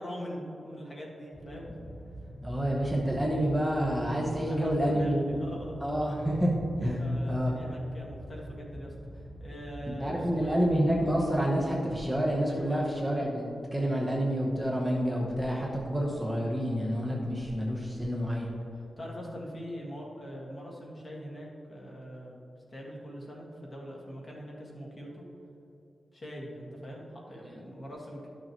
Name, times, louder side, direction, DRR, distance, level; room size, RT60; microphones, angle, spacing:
voice 1, 0.0-1.7 4.4-5.8 7.0-10.6 12.5-13.2 13.9-14.2 18.7-22.4 22.7-25.2 26.1-28.3, equal, 35° left, -3 dB, 1.7 m, -42 dB
sound 1, 1.3-11.2, equal, 40° right, 1.3 m, -45 dB
voice 2, 2.4-5.4 5.8-6.5 6.8-7.5 10.0-18.5, equal, 5° right, -4 dB, 1.0 m, -28 dB
12.0 x 6.5 x 3.0 m, 3.0 s
wide cardioid pair, 155°, 0 cm